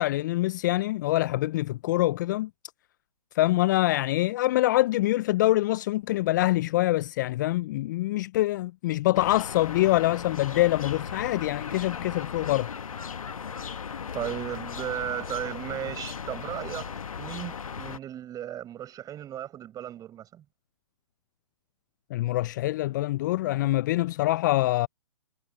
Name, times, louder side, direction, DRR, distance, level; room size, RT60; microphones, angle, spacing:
voice 1, 0.0-2.5 3.4-12.7 22.1-24.9, left 17 dB, 35° left, 0.3 m, -25 dB
sound 1, 9.1-18.0, left 6 dB, 75° left, 1.6 m, -37 dB
voice 2, 14.1-20.4, right 11 dB, 20° right, 5.7 m, -35 dB
hypercardioid pair, 130°, 18 cm